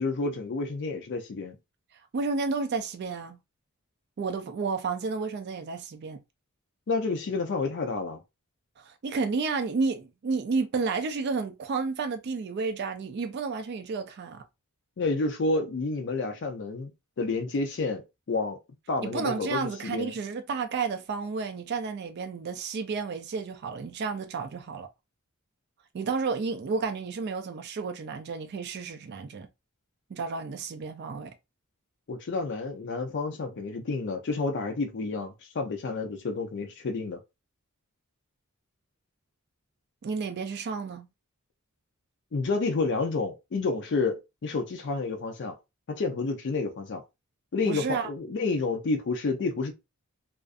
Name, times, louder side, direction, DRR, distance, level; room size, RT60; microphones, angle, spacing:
voice 1, 0.0-1.6 6.9-8.2 15.0-16.9 17.2-18.0 18.3-18.6 18.9-20.1 32.1-37.2 42.3-45.5 45.9-47.0 47.5-49.7, left 3 dB, 55° left, 0.4 m, -29 dB
voice 2, 2.1-3.4 4.2-6.2 8.8-14.4 19.0-24.9 25.9-29.5 30.1-31.3 40.0-41.1 47.6-48.1, right 4 dB, 50° right, 0.3 m, -31 dB
2.4 x 2.4 x 2.4 m
head